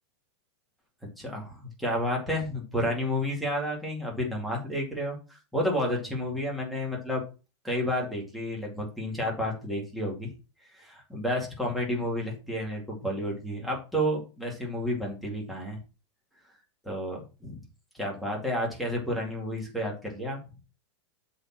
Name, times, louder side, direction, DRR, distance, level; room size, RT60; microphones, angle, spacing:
voice 1, 1.2-7.2 7.6-10.3 10.7-15.8 16.8-17.6 17.9-20.4, equal, ahead, -3 dB, 2.5 m, -31 dB
7.7 x 4.3 x 6.0 m, 0.32 s
supercardioid pair, 155°, 15 cm